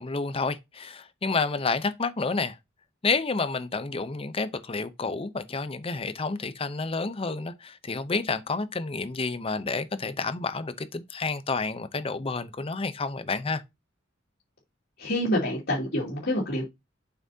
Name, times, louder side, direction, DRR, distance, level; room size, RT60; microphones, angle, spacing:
voice 1, 0.0-2.6 3.0-13.6, left 4 dB, 30° left, 0.6 m, -30 dB
voice 2, 15.0-16.6, left 1 dB, 55° left, 2.5 m, -27 dB
7.4 x 5.9 x 2.7 m
head